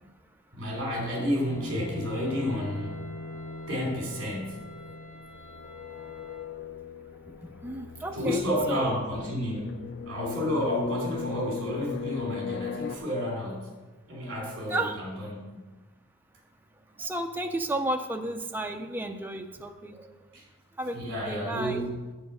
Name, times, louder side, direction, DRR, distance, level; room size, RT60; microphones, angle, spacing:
voice 1, 0.5-3.0 3.7-4.6 8.1-9.7 10.1-13.7 14.1-15.7 20.3-20.4 20.9-22.0, equal, 60° right, -1 dB, 2.9 m, -31 dB
Wind instrument woodwind instrument, 1.2-6.5, left 1 dB, 20° left, 2.7 m, -51 dB
sound 1, 1.4-13.0, left 6 dB, 55° left, 0.4 m, -39 dB
voice 2, 7.6-8.4 8.7-9.0 14.7-15.0 17.0-20.1 20.8-21.8, right 1 dB, 10° right, 4 dB, 0.5 m, -32 dB
7.3 x 7.1 x 5.5 m, 1.2 s
head